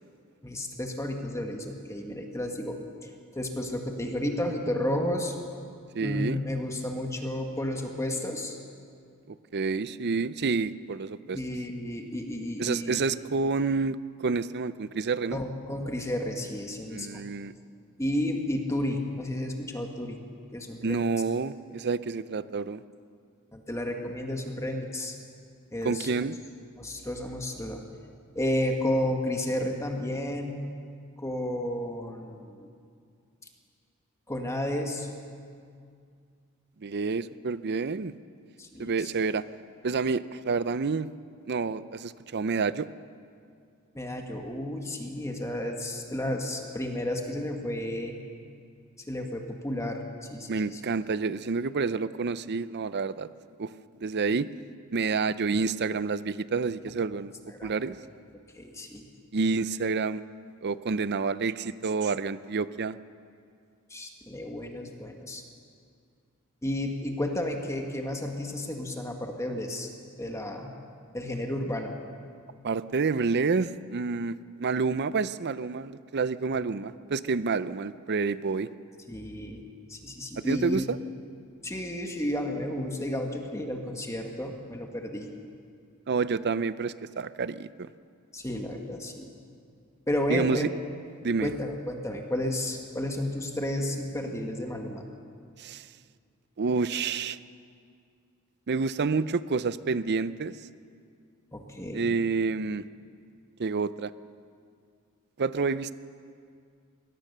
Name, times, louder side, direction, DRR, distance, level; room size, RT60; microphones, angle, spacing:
voice 1, 0.4-5.4 6.0-8.6 11.3-13.0 15.3-17.2 18.0-20.2 20.5-21.1 23.5-25.2 25.7-26.1 26.8-27.8 28.4-30.7 31.2-32.7 34.3-35.1 38.6-39.1 43.9-48.2 49.1-50.8 57.5-57.7 58.5-59.1 63.9-65.4 66.6-69.9 70.2-70.7 71.1-71.9 79.1-80.8 81.6-85.3 88.3-89.3 90.1-90.7 91.4-95.1 101.5-102.2, left 1 dB, 15° left, 3 dB, 1.6 m, -32 dB
voice 2, 5.9-6.4 9.3-11.4 12.6-15.4 16.9-17.5 20.8-22.8 25.8-26.4 36.8-38.1 38.8-39.4 39.8-41.1 41.5-42.9 50.5-53.3 53.6-53.7 54.0-54.5 54.9-57.3 57.6-58.0 59.3-60.2 60.6-63.0 72.6-78.7 80.4-81.0 86.1-87.9 90.3-90.6 91.2-91.5 95.6-95.9 96.6-97.4 98.7-100.6 101.9-102.9 103.6-104.1 105.4-105.9, right 4 dB, 50° right, 15 dB, 0.6 m, -28 dB
22.5 x 17.5 x 6.7 m, 2.3 s
head